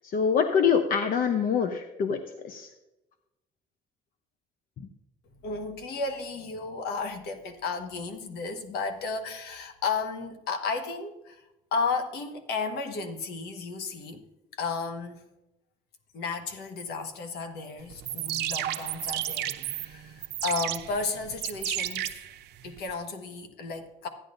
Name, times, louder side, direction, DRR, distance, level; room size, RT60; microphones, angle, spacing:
voice 1, 0.1-2.7, left 6 dB, 55° left, 7 dB, 0.8 m, -25 dB
voice 2, 5.4-11.4 11.7-14.2 14.5-15.2 16.1-22.2 22.6-24.1, left 4 dB, 75° left, 6 dB, 1.4 m, -33 dB
sound 1, 17.9-22.9, right 13 dB, 80° right, 0.7 m, -33 dB
13.5 x 10.0 x 2.6 m, 0.97 s
cardioid pair, 110°, 17 cm